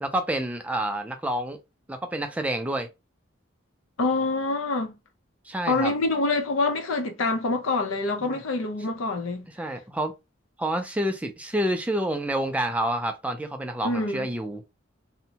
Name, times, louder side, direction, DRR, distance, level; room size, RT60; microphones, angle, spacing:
voice 1, 0.0-1.6 1.9-2.9 5.5-5.9 8.2-8.4 9.6-10.1 10.6-14.6, right 1 dB, 5° right, 0.3 m, -28 dB
voice 2, 4.0-4.9 5.7-9.5 13.8-14.3, left 3 dB, 90° left, 0.6 m, -26 dB
2.7 x 2.1 x 2.7 m
head